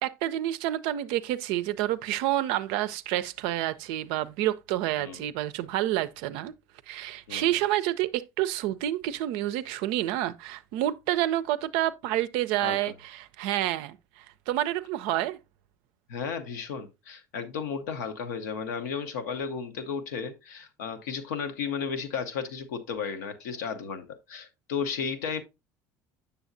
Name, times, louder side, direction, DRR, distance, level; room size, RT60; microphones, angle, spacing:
voice 1, 0.0-6.5 6.9-14.0 14.5-15.4, right 14 dB, 75° right, 0.4 m, -28 dB
voice 2, 16.1-25.4, left 6 dB, 85° left, 0.7 m, -34 dB
7.0 x 6.9 x 2.5 m
hypercardioid pair, 70°, 9 cm